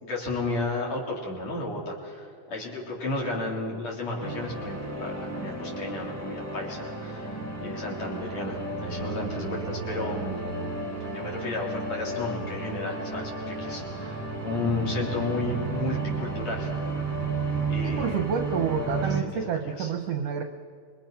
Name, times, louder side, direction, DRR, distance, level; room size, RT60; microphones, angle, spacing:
voice 1, 0.0-10.4 11.1-17.0 17.7-18.2 18.9-19.9, left 2 dB, 55° left, -2 dB, 4.8 m, -33 dB
sound 1, 4.2-19.2, right 3 dB, 5° left, 1.7 m, -32 dB
voice 2, 17.8-20.4, right 7 dB, 70° right, 5 dB, 1.6 m, -29 dB
26.0 x 23.0 x 5.8 m, 2.2 s
omnidirectional pair, 3.7 m